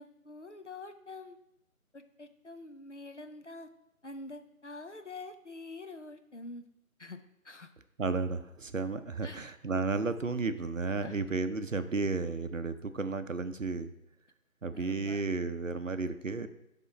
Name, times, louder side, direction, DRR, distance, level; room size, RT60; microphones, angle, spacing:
voice 1, 0.0-1.4 1.9-3.7 4.0-6.6 7.0-7.2 7.4-7.7 9.2-9.5 11.0-11.2 14.7-15.2, left 2 dB, 55° left, 8 dB, 0.6 m, -46 dB
voice 2, 8.0-13.9 14.6-16.5, right 3 dB, 60° right, 10 dB, 0.6 m, -33 dB
11.0 x 3.7 x 4.2 m, 0.86 s
figure-of-eight pair, 180°, 43 cm